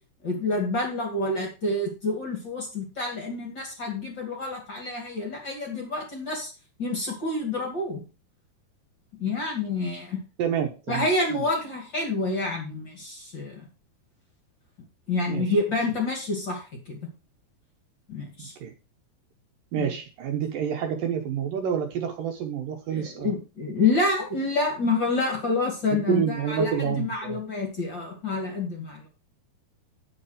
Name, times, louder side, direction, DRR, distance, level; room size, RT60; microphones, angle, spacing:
voice 1, 0.2-6.5 6.8-8.0 9.2-10.2 10.9-13.7 15.1-17.0 18.1-18.5 19.8-19.9 22.9-29.1, left 3 dB, 35° left, 0 dB, 2.5 m, -28 dB
voice 2, 10.4-11.1 11.4-11.5 15.3-15.6 18.4-18.7 19.7-23.3 25.9-27.4, right 8 dB, 70° right, 4 dB, 2.3 m, -28 dB
9.6 x 7.0 x 5.0 m, 0.32 s
omnidirectional pair, 4.7 m